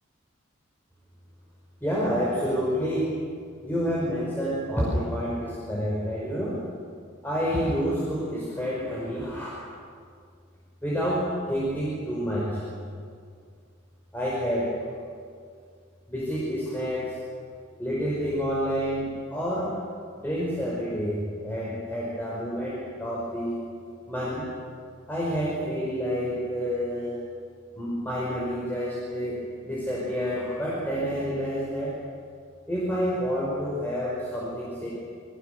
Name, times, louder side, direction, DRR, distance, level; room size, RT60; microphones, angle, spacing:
voice 1, 1.8-3.1 3.6-6.6 7.2-9.5 10.8-12.6 14.1-14.7 16.1-17.2 17.8-19.8 20.2-23.6 24.1-24.5 25.1-27.2 27.8-32.0 32.7-34.9, equal, 10° left, -6 dB, 5.0 m, -28 dB
28.0 x 21.5 x 6.6 m, 2.1 s
head